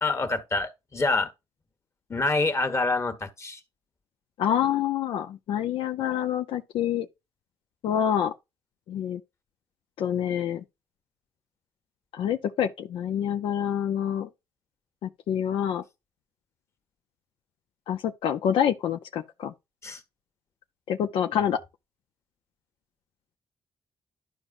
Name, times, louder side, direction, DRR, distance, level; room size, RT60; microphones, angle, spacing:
voice 1, 0.0-1.3 2.1-3.6 19.8-20.0 21.3-21.4, left 3 dB, 30° left, 1.4 m, -26 dB
voice 2, 4.4-7.1 7.8-8.3 8.9-9.2 10.0-10.6 12.1-14.3 15.0-15.8 17.9-19.5 20.9-21.6, left 9 dB, 85° left, 0.5 m, -27 dB
11.5 x 5.0 x 2.5 m
cardioid pair, 85°, 9 cm